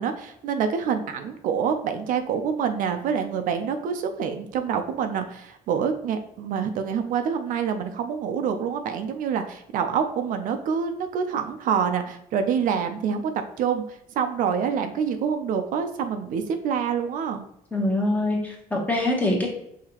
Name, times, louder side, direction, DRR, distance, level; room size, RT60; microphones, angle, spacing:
voice 1, 0.0-17.4, right 7 dB, 65° right, 7 dB, 0.4 m, -26 dB
voice 2, 17.7-19.5, left 1 dB, 10° left, -1 dB, 0.9 m, -24 dB
5.6 x 2.8 x 2.9 m, 0.76 s
cardioid pair, 155°, 15 cm